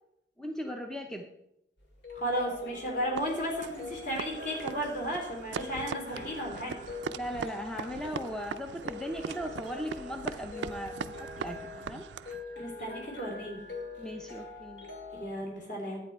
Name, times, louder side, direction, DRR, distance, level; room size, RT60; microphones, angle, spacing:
voice 1, 0.4-1.3 7.2-12.0 14.0-14.9, equal, 5° left, 4 dB, 0.5 m, -38 dB
sound 1, 1.8-15.3, left 3 dB, 70° left, 2.1 m, -44 dB
voice 2, 2.1-6.8 12.6-13.6 15.2-16.0, equal, 45° left, 0 dB, 3.3 m, -34 dB
sound 2, 3.2-12.4, right 6 dB, 75° right, 0.4 m, -41 dB
11.0 x 8.8 x 4.4 m, 0.85 s
head